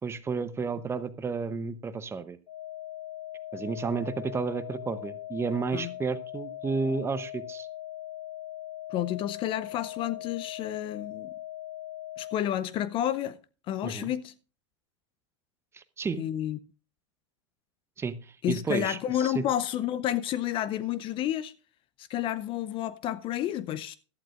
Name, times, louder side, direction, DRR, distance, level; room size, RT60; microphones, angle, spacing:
voice 1, 0.0-2.4 3.5-7.7 13.8-14.1 15.7-16.2 18.0-19.4, right 5 dB, 15° right, 0.8 m, -32 dB
sound 1, 2.5-12.5, left 13 dB, 80° left, 1.2 m, -40 dB
voice 2, 8.9-11.3 12.2-13.4 13.7-14.3 16.2-16.6 18.4-21.5 22.0-24.0, left 12 dB, 35° left, 0.5 m, -30 dB
16.5 x 12.0 x 2.5 m
hypercardioid pair, 115°, 15 cm